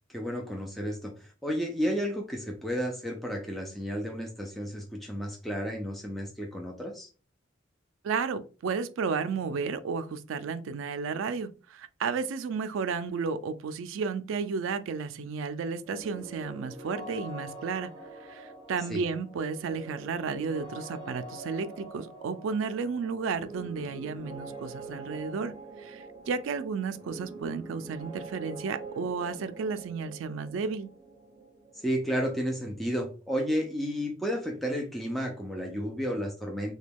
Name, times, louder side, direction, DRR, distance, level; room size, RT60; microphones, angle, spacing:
voice 1, 0.1-7.1 18.9-19.0 31.7-36.7, equal, ahead, 0.4 m, -32 dB
voice 2, 8.0-17.9 18.2-30.9, right 5 dB, 75° right, 0.3 m, -33 dB
sound 1, 15.8-33.5, right 2 dB, 20° right, 0.7 m, -45 dB
2.9 x 2.2 x 3.4 m
head